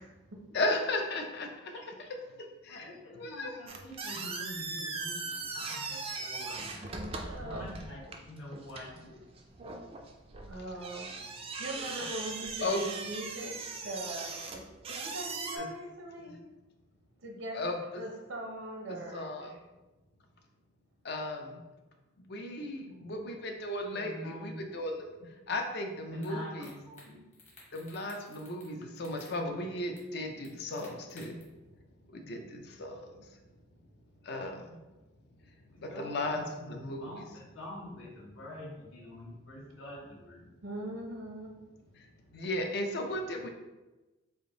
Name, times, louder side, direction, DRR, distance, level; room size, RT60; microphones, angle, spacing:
voice 1, 0.5-1.8 2.6-3.5 5.6-5.8 12.0-12.1 12.6-12.8 15.6-15.7 16.3-16.4 17.5-18.0 18.9-19.6 21.0-21.6 22.3-25.0 25.5-26.7 27.7-31.4 32.3-33.0 34.3-34.8 35.8-37.1 42.3-43.5, left 1 dB, 55° left, 4 dB, 0.5 m, -35 dB
voice 2, 2.7-6.8 7.3-9.2 11.7-11.8 22.5-23.3 23.9-24.6 26.1-27.2 32.2-32.3 35.7-36.3 36.6-40.5, left 1 dB, 75° left, -5 dB, 1.3 m, -46 dB
sound 1, 3.7-15.6, right 4 dB, 30° right, 0.3 m, -40 dB
voice 3, 7.3-7.7 10.5-11.2 11.6-13.6 13.8-16.4 17.2-17.6 18.0-19.3 40.6-41.5, right 1 dB, 80° right, -1 dB, 0.7 m, -41 dB
sound 2, 26.2-26.3 26.6-27.1 27.3-28.7 29.0-29.3 30.0-30.1 30.4-31.4, left 3 dB, 35° left, 1.1 m, -55 dB
3.5 x 2.6 x 3.8 m, 1.1 s
head